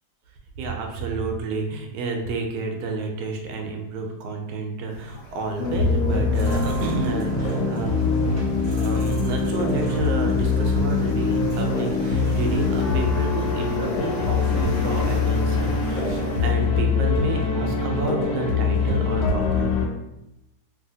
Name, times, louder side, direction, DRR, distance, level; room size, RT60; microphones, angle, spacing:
voice 1, 0.6-8.0 8.7-19.7, right 4 dB, 75° right, 2 dB, 1.0 m, -30 dB
sound 1, 4.9-16.5, left 1 dB, 55° left, 1.0 m, -40 dB
sound 2, 5.6-19.9, left 4 dB, 75° left, 1.2 m, -23 dB
sound 3, 6.3-12.8, right 1 dB, 10° right, 0.8 m, -38 dB
2.7 x 2.7 x 2.6 m, 0.91 s
omnidirectional pair, 1.8 m